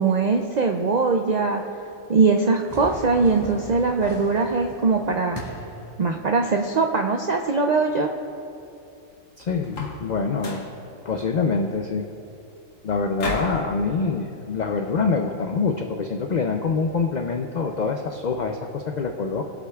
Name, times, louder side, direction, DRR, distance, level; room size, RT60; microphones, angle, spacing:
voice 1, 0.0-1.6 2.1-5.4 6.0-8.1, right 4 dB, 65° right, 3 dB, 0.4 m, -21 dB
sound 1, 2.7-5.9, equal, 20° left, 2.2 m, -39 dB
voice 2, 9.4-10.7 11.0-12.0 12.8-19.4, left 4 dB, 60° left, 4 dB, 0.4 m, -25 dB
sound 2, 9.6-10.1 10.4-10.8 13.2-13.6, left 2 dB, 75° left, 1.5 m, -32 dB
20.0 x 8.0 x 2.4 m, 2.7 s
omnidirectional pair, 1.4 m